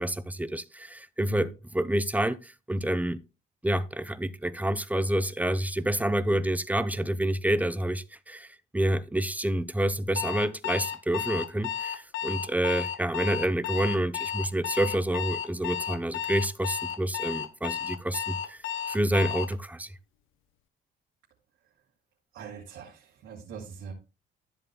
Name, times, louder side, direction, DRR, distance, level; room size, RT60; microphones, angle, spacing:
voice 1, 0.0-3.2 3.6-18.6 18.9-19.9, right 1 dB, 10° right, 0.6 m, -28 dB
Alarm, 10.2-19.6, left 9 dB, 85° left, 0.9 m, -33 dB
voice 2, 22.3-23.9, right 7 dB, 85° right, 2.2 m, -43 dB
13.0 x 7.6 x 2.2 m
cardioid pair, 90°, 20 cm